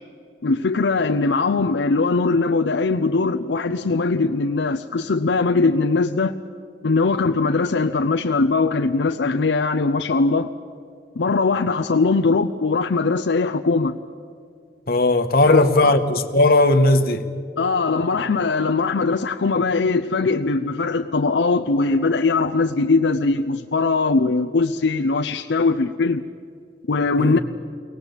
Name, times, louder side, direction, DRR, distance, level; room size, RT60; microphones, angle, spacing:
voice 1, 0.4-6.3 6.8-10.5 11.2-14.0 15.4-16.0 17.6-26.2 26.9-27.4, left 3 dB, 80° left, 0.6 m, -20 dB
voice 2, 14.9-17.3 27.2-27.4, left 2 dB, 55° left, 1.3 m, -17 dB
23.5 x 18.0 x 8.1 m
head